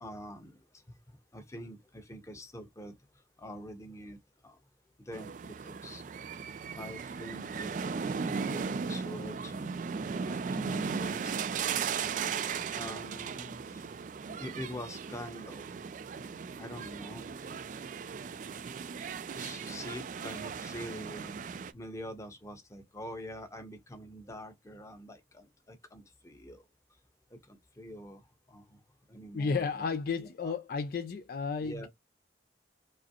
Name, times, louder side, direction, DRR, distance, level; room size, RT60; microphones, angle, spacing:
voice 1, 0.0-0.6 0.9-1.0 1.3-2.9 3.4-4.2 4.4-4.6 5.0-6.0 6.7-7.7 8.1-9.8 10.2-11.5 12.7-13.8 14.4-15.7 16.6-17.6 19.0-21.4 21.7-26.6 27.3-28.8 29.1-29.9 30.2-30.6 31.6-31.9, equal, 15° left, 0.8 m, -45 dB
sound 1, 5.1-21.7, right 6 dB, 45° right, 0.3 m, -37 dB
voice 2, 29.3-31.9, left 5 dB, 55° left, 0.3 m, -33 dB
4.9 x 2.0 x 2.8 m
head